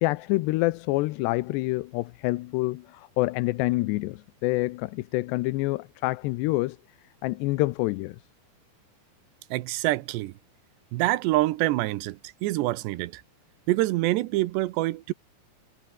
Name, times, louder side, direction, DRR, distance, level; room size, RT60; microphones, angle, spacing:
voice 1, 0.0-6.8 7.2-8.2, left 21 dB, 85° left, 2.9 m, -27 dB
voice 2, 9.5-10.3 10.9-13.2 13.7-15.1, right 18 dB, 90° right, 3.1 m, -26 dB
omnidirectional pair, 4.8 m